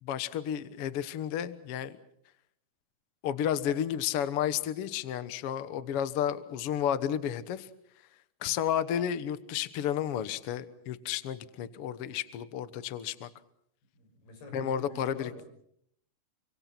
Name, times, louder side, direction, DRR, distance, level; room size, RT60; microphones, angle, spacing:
voice 1, 0.0-2.0 3.2-7.7 8.4-13.3 14.5-15.3, left 9 dB, 70° left, 12 dB, 1.4 m, -32 dB
voice 2, 13.9-15.4, left 2 dB, 85° left, 5 dB, 8.1 m, -47 dB
28.0 x 25.0 x 6.0 m, 0.72 s
omnidirectional pair, 4.4 m